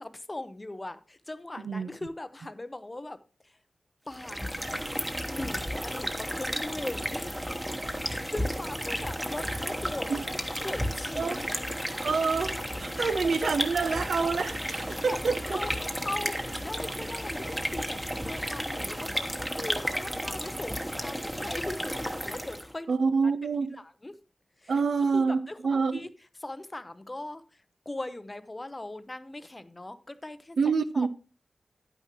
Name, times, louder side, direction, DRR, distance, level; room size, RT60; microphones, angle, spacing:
voice 1, 0.0-3.6 4.1-4.8 5.3-7.4 8.0-10.2 10.6-11.5 12.9-13.6 14.9-15.2 15.5-22.9 23.8-24.1 24.6-26.1 26.4-30.6 30.9-31.1, left 2 dB, 20° left, 0.6 m, -40 dB
voice 2, 1.6-1.9 10.1-10.2 11.2-11.4 12.0-15.6 22.9-23.8 24.7-26.1 30.6-31.1, right 4 dB, 80° right, 0.6 m, -27 dB
sound 1, 4.1-22.7, equal, 5° right, 1.1 m, -33 dB
10.5 x 9.1 x 3.0 m
wide cardioid pair, 110°, 0 cm